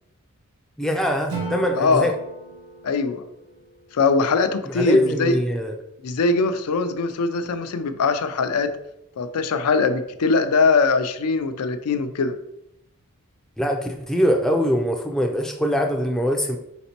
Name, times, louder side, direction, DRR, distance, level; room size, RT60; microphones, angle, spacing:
voice 1, 0.8-2.1 4.7-5.7 13.6-16.6, equal, ahead, 2 dB, 0.3 m, -22 dB
Acoustic guitar / Strum, 1.3-4.4, right 4 dB, 85° right, 1.8 m, -36 dB
voice 2, 1.8-2.1 2.8-3.2 3.9-5.4 6.0-8.7 9.2-12.3, left 4 dB, 90° left, 9 dB, 0.4 m, -21 dB
4.2 x 4.0 x 2.9 m, 0.80 s
head